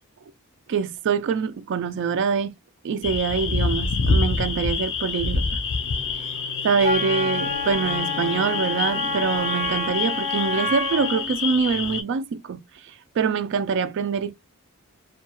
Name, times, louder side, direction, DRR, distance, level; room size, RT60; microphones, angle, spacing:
voice 1, 0.7-2.5 2.8-5.4 6.1-6.3 6.6-14.3, right 5 dB, 55° right, 0.3 m, -25 dB
sound 1, 3.0-12.0, left 4 dB, 55° left, 0.5 m, -27 dB
Wind instrument woodwind instrument, 6.8-11.3, left 3 dB, 30° right, 1.0 m, -29 dB
2.2 x 2.2 x 2.9 m
head